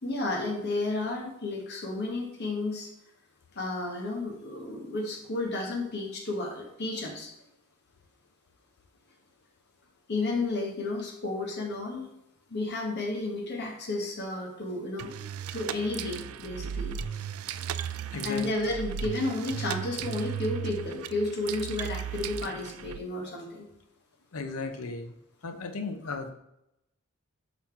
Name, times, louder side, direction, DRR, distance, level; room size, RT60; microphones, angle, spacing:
voice 1, 0.0-2.9 3.5-7.3 10.1-12.1 12.5-15.1 15.5-17.0 18.2-23.6, left 2 dB, 50° left, -1 dB, 1.4 m, -32 dB
sound 1, 15.0-23.0, right 8 dB, 75° right, 0.3 m, -36 dB
voice 2, 18.1-18.5 24.3-25.1 25.4-26.3, left 3 dB, 85° left, 6 dB, 0.7 m, -35 dB
5.7 x 4.0 x 4.6 m, 0.83 s
head